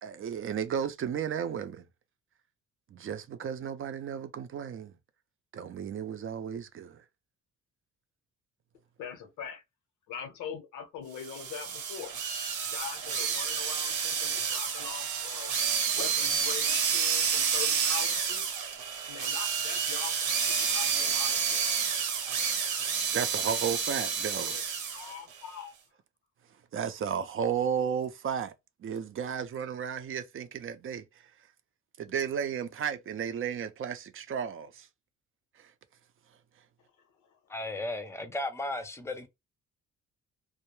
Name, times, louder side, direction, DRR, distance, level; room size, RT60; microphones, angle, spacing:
voice 1, 0.0-1.8 2.9-4.9 5.5-7.0 23.1-24.6 26.7-28.5 28.8-31.0 32.0-34.9 35.6-35.7, right 7 dB, 45° right, 0.5 m, -33 dB
voice 2, 9.0-9.6 10.1-12.1 12.7-15.5 15.9-18.5 19.0-21.7 24.4-24.6 24.9-25.7 37.2-37.3, left 7 dB, 90° left, 0.8 m, -42 dB
sound 1, 11.2-25.1, right 6 dB, 85° right, 0.8 m, -30 dB
voice 3, 37.5-39.3, left 2 dB, 10° left, 0.5 m, -35 dB
2.2 x 2.1 x 3.0 m
cardioid pair, 90°, 30 cm